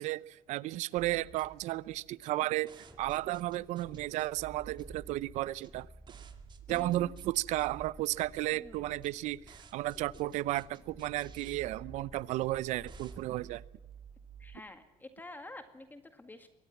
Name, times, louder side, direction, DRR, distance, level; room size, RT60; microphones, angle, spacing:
voice 1, 0.0-5.9 6.7-13.6, right 16 dB, 70° right, 21 dB, 0.7 m, -33 dB
sound 1, 1.0-14.6, right 7 dB, 40° right, 2.4 m, -53 dB
sound 2, 2.8-13.4 13.8-13.9, right 1 dB, 5° right, 2.7 m, -56 dB
voice 2, 6.7-7.1 8.5-9.0 14.4-16.5, left 2 dB, 15° left, 8 dB, 2.0 m, -49 dB
23.5 x 18.0 x 7.3 m, 0.97 s
cardioid pair, 100°, 12 cm